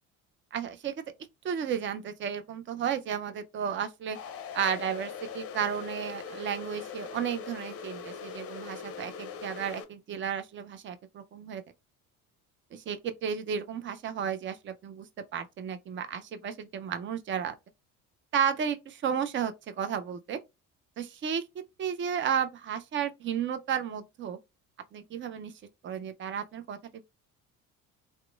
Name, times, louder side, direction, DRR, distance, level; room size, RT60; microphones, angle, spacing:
voice 1, 0.5-0.9 1.4-4.2 4.5-11.6 12.7-15.1 15.3-17.6 18.3-20.4 21.0-21.4 21.8-24.4 24.9-25.5 25.8-27.0, right 8 dB, 30° right, 0.4 m, -33 dB
sound 1, 4.1-9.8, left 6 dB, 35° left, 0.6 m, -41 dB
2.8 x 2.1 x 2.3 m
hypercardioid pair, 60°, 42 cm